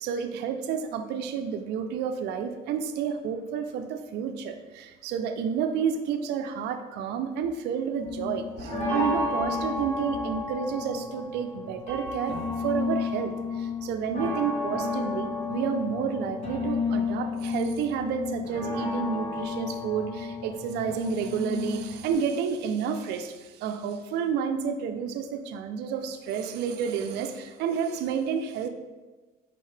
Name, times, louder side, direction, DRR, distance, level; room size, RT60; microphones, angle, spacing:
voice 1, 0.0-28.7, right 7 dB, 80° right, 8 dB, 0.4 m, -30 dB
sound 1, 8.0-22.1, left 3 dB, 40° left, 1.5 m, -32 dB
5.1 x 2.8 x 3.2 m, 1.2 s
cardioid pair, 110°, 17 cm